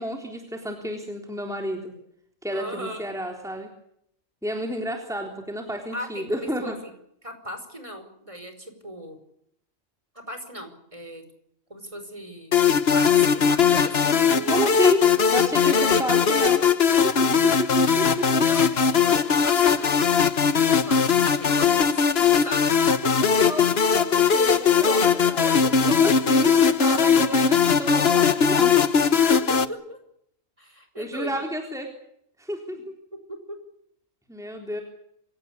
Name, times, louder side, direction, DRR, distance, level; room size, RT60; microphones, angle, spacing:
voice 1, 0.0-1.9 2.4-3.7 4.4-6.8 14.5-15.0 15.3-16.6 17.0-17.1 17.4-18.4 23.2-25.5 25.9-28.7 31.0-31.9 32.4-32.8 34.3-34.8, equal, ahead, 2 dB, 3.8 m, -30 dB
voice 2, 2.5-3.1 5.9-6.9 7.2-9.2 10.1-11.2 11.7-12.5 12.9-14.7 15.6-16.4 16.9-17.1 18.4-20.0 20.8-23.3 24.7-25.1 25.4-26.1 29.3-30.0 30.6-31.4 32.7-32.8 33.3-33.6, equal, 25° right, 7 dB, 5.4 m, -37 dB
sound 1, 12.5-29.7, left 6 dB, 50° left, 1.4 m, -20 dB
27.0 x 17.5 x 8.5 m, 0.73 s
omnidirectional pair, 1.4 m